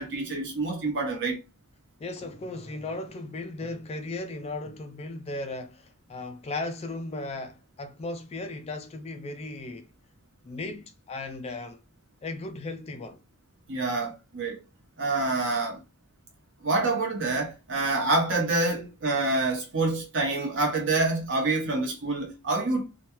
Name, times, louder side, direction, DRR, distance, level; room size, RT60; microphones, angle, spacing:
voice 1, 0.0-1.4 13.7-14.6 15.0-15.8 16.6-22.9, right 2 dB, 55° right, 1.0 m, -27 dB
voice 2, 2.0-9.9 10.4-11.8 12.2-13.2, left 2 dB, 25° left, 0.3 m, -36 dB
2.9 x 2.2 x 3.0 m
head